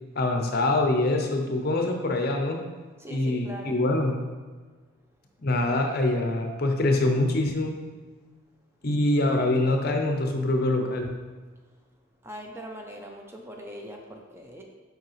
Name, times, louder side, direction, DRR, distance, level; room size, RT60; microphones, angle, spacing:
voice 1, 0.2-2.6 3.1-4.1 5.4-7.7 8.8-11.1, left 2 dB, 45° left, 3 dB, 0.7 m, -24 dB
voice 2, 3.0-3.8 12.2-14.6, equal, 10° right, 1 dB, 0.5 m, -41 dB
7.3 x 4.8 x 3.1 m, 1.4 s
head